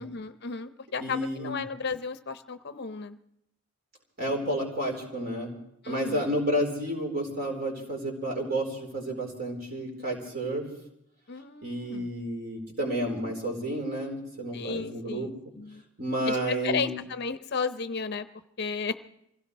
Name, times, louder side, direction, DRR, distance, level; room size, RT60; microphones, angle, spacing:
voice 1, 0.0-3.2 5.8-6.2 11.3-12.1 14.5-15.8 16.3-18.3 18.6-18.9, left 5 dB, 50° left, 11 dB, 0.7 m, -34 dB
voice 2, 1.0-1.5 4.2-5.5 5.9-10.6 11.6-15.3 16.0-16.9, right 1 dB, 45° right, 0 dB, 4.3 m, -31 dB
25.5 x 17.0 x 3.3 m, 0.78 s
head